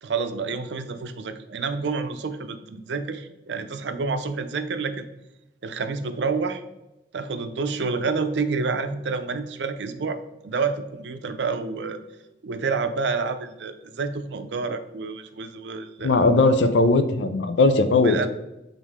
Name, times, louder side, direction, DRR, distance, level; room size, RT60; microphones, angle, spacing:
voice 1, 0.0-5.1 5.6-6.6 7.1-12.0 12.4-16.2 18.0-18.3, right 4 dB, 85° right, 9 dB, 0.5 m, -28 dB
voice 2, 16.0-18.3, left 3 dB, 85° left, 9 dB, 0.5 m, -19 dB
7.2 x 3.6 x 3.6 m, 0.93 s
head